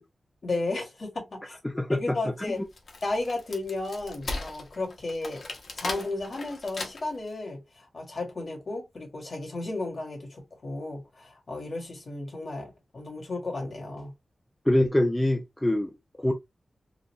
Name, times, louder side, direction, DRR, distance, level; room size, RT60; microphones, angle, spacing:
voice 1, 0.4-1.6 1.9-2.6 3.0-5.5 5.8-14.1, left 2 dB, 50° left, 1.8 m, -34 dB
voice 2, 1.6-2.2 14.7-16.3, left 1 dB, 10° left, 0.5 m, -25 dB
Wood, 2.5-7.3, left 2 dB, 65° left, 1.0 m, -37 dB
4.0 x 2.3 x 3.0 m
wide cardioid pair, 145°, 0 cm